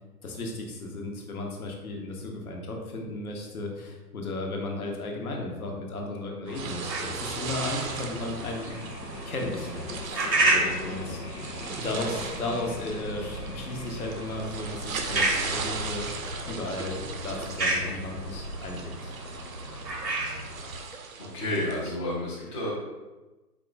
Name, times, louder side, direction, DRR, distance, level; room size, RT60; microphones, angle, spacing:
voice 1, 0.2-8.7 9.3-9.7 10.1-10.2 10.5-11.2 11.8-19.1, left 2 dB, 60° left, 1 dB, 1.1 m, -35 dB
sound 1, 6.5-22.0, right 5 dB, 55° right, 0.7 m, -39 dB
sound 2, 6.5-20.8, right 2 dB, 90° right, 1.1 m, -32 dB
sound 3, 8.1-20.1, left 4 dB, 85° left, 0.7 m, -45 dB
voice 2, 21.2-22.7, left 1 dB, 20° left, -7 dB, 0.6 m, -30 dB
4.6 x 2.4 x 3.9 m, 1.1 s
hypercardioid pair, 145°, 49 cm